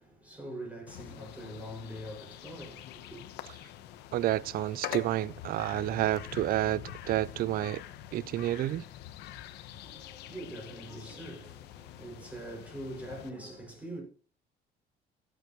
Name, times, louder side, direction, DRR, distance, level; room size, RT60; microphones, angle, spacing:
voice 1, 0.0-3.2 9.8-14.0, right 1 dB, 10° right, 6.0 m, -43 dB
sound 1, 0.9-13.3, left 11 dB, 85° left, 1.0 m, -45 dB
voice 2, 4.1-7.8 8.1-8.8, right 14 dB, 60° right, 0.4 m, -30 dB
16.0 x 8.3 x 3.0 m
cardioid pair, 110°, 17 cm